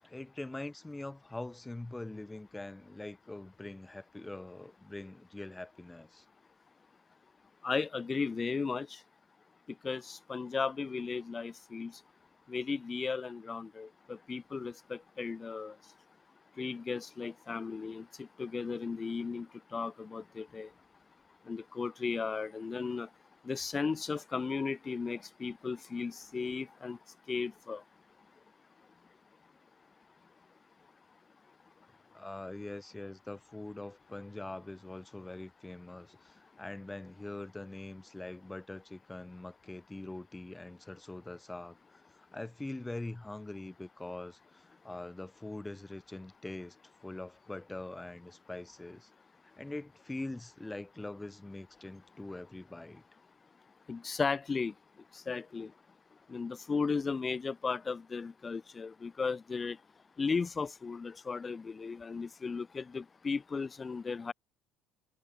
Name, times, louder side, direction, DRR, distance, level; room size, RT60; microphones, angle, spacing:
voice 1, 0.0-6.2 32.1-46.8 47.0-49.1 49.6-53.0, left 2 dB, 10° left, 4.5 m, -43 dB
voice 2, 7.6-9.0 9.7-12.0 12.5-15.9 16.6-20.7 21.4-23.1 23.4-27.0 27.3-27.8 53.9-54.7 55.1-55.7 56.3-59.8 60.2-64.3, left 4 dB, 25° left, 3.6 m, -36 dB
supercardioid pair, 100°, 0 cm